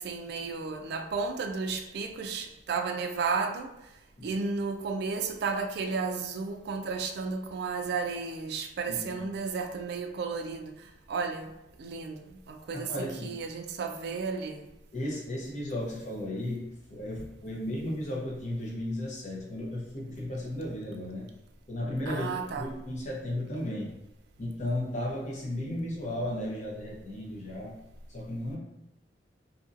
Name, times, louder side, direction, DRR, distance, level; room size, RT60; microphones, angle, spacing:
voice 1, 0.0-3.9 4.2-11.5 11.8-14.7 22.1-22.7, right 4 dB, 65° right, 0.3 m, -33 dB
voice 2, 8.9-9.2 12.7-13.3 14.9-21.3 21.7-22.3 22.6-23.9 24.4-27.8 28.1-28.6, left 1 dB, 45° left, 0.8 m, -35 dB
2.8 x 2.5 x 2.5 m
head